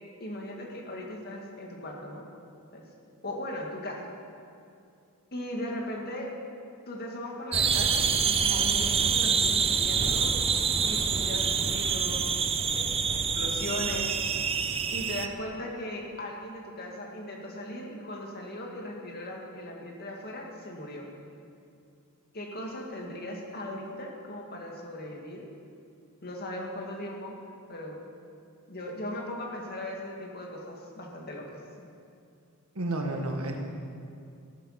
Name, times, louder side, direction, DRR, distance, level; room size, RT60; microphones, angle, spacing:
voice 1, 0.2-2.3 2.7-2.9 3.2-4.0 5.3-6.3 6.9-10.3 10.8-12.4 12.7-14.2 14.9-21.1 22.3-25.4 26.2-27.4 27.7-28.0 28.7-31.6, left 1 dB, 45° left, 0 dB, 2.1 m, -38 dB
sound 1, 7.5-15.3, right 6 dB, 25° right, 0.6 m, -26 dB
voice 2, 32.7-33.6, right 2 dB, 75° right, 3 dB, 1.6 m, -31 dB
14.0 x 11.5 x 5.9 m, 2.5 s
head